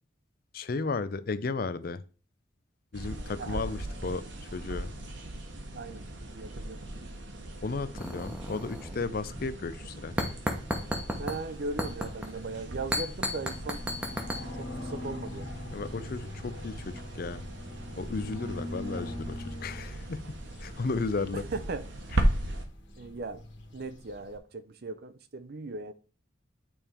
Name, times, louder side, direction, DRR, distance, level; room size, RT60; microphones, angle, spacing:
voice 1, 0.5-2.0 2.9-4.3 4.5-4.9 7.6-10.2 15.7-17.5 18.0-21.4, left 3 dB, 50° left, 0.5 m, -34 dB
sound 1, 2.9-22.7, right 1 dB, 70° right, 1.2 m, -37 dB
voice 2, 5.7-6.8 11.2-13.8 14.6-15.5 21.3-21.9 23.0-23.4 23.7-25.9, right 3 dB, 50° right, 0.6 m, -38 dB
sound 2, 7.9-9.1 9.4-9.5 10.2-11.4 11.8-12.3 12.9-14.4, equal, 5° right, 1.0 m, -33 dB
sound 3, 10.6-24.4, left 1 dB, 65° left, 1.9 m, -43 dB
8.9 x 3.5 x 4.4 m
head